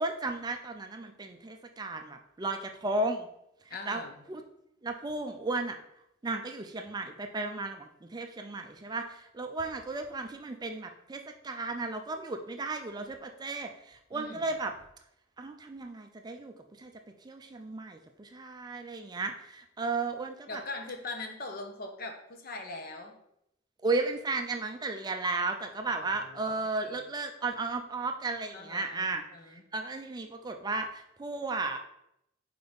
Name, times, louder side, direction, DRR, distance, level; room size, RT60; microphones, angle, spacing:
voice 1, 0.0-3.3 3.7-4.0 4.3-4.4 4.8-5.8 6.2-14.7 15.4-16.5 16.8-16.9 17.2-20.6 23.8-31.8, right 3 dB, 20° right, 5 dB, 0.4 m, -34 dB
voice 2, 3.7-4.1 14.1-14.4 20.5-23.1 25.9-27.0 28.5-29.6, left 2 dB, 50° left, 3 dB, 0.9 m, -42 dB
4.7 x 4.0 x 5.1 m, 0.79 s
head